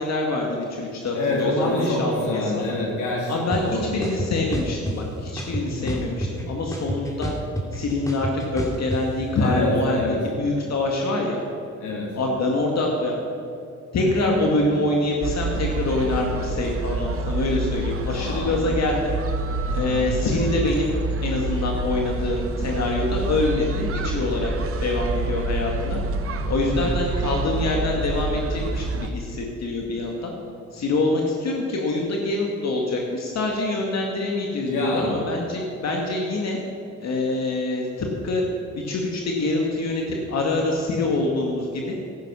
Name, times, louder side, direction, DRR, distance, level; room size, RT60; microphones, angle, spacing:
voice 1, 0.0-2.1 2.6-2.7 3.3-7.3 7.7-10.1 10.4-11.4 12.1-13.2 13.9-19.1 19.7-24.5 24.8-26.0 26.5-30.3 30.7-36.6 37.0-38.4 38.8-41.9, left 2 dB, 60° left, 0 dB, 2.0 m, -25 dB
voice 2, 1.1-4.2 5.7-6.0 9.3-10.3 11.8-12.2 14.1-14.4 18.1-18.6 19.7-20.0 26.6-27.0 34.6-35.2, left 2 dB, 80° left, -3 dB, 3.4 m, -27 dB
sound 1, 3.5-3.6 4.0-5.0 5.4-6.4 6.7-9.0, right 1 dB, 10° left, 2.7 m, -29 dB
sound 2, 15.2-29.1, right 2 dB, 50° right, 1.2 m, -27 dB
15.0 x 11.0 x 6.2 m, 2.7 s
cardioid pair, 90°, 30 cm